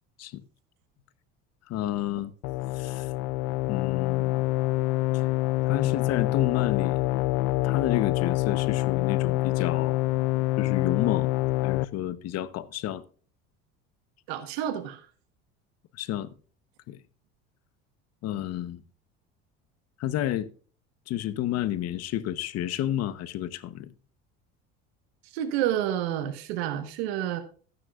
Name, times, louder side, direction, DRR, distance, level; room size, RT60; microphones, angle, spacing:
voice 1, 1.7-2.3 2.7-3.1 3.7-4.4 5.7-7.1 7.6-10.0 10.6-11.3 11.6-13.0 15.9-16.3 16.9-17.0 18.2-18.8 20.0-20.5 21.1-23.9, left 12 dB, 55° left, 1.0 m, -30 dB
sound 1, 2.4-11.9, left 18 dB, 85° left, 0.5 m, -26 dB
voice 2, 14.3-15.0 25.3-27.4, right 11 dB, 85° right, 1.3 m, -29 dB
13.5 x 9.6 x 2.4 m
supercardioid pair, 105°, 30 cm